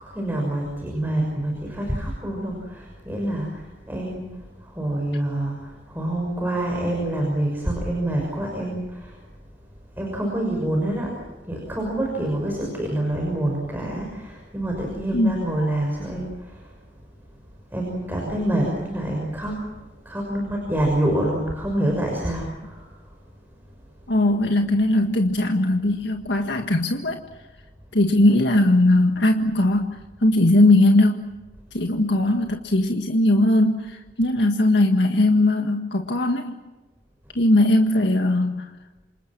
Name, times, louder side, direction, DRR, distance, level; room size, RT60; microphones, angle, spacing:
voice 1, 0.0-9.2 10.0-16.8 17.7-19.7 20.0-23.1, right 1 dB, 10° right, -1 dB, 6.1 m, -27 dB
voice 2, 24.1-27.2 27.9-31.2 31.7-36.6 37.4-38.7, left 1 dB, 85° left, 4 dB, 1.7 m, -19 dB
29.0 x 27.0 x 6.2 m, 1.1 s
head